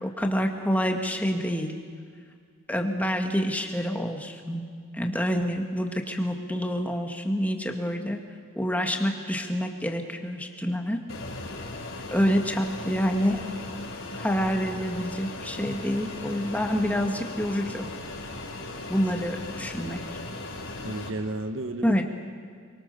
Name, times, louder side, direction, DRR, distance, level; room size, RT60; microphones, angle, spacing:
voice 1, 0.0-1.7 2.7-4.7 4.9-8.2 8.6-11.0 12.1-13.4 14.2-17.9 18.9-20.0 21.8-22.0, equal, 10° left, 3 dB, 1.9 m, -27 dB
Fixed-wing aircraft airplane, 11.1-21.1, left 2 dB, 70° left, 4.5 m, -38 dB
voice 2, 20.8-22.1, right 2 dB, 70° right, 8 dB, 1.5 m, -33 dB
29.5 x 23.5 x 6.9 m, 2.1 s
head